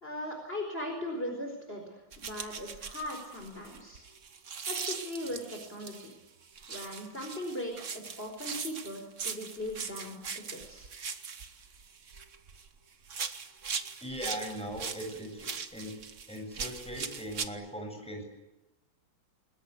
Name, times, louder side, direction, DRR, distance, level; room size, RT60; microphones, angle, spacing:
voice 1, 0.0-4.0 4.7-6.1 6.7-10.9, left 1 dB, 30° left, 2 dB, 4.9 m, -39 dB
sound 1, 2.1-6.1 6.6-12.7 13.0-17.5, right 6 dB, 45° right, 1.5 m, -40 dB
voice 2, 14.0-15.9 16.3-18.2, equal, 5° left, 2 dB, 7.6 m, -39 dB
29.0 x 21.0 x 8.4 m, 1.0 s
omnidirectional pair, 2.1 m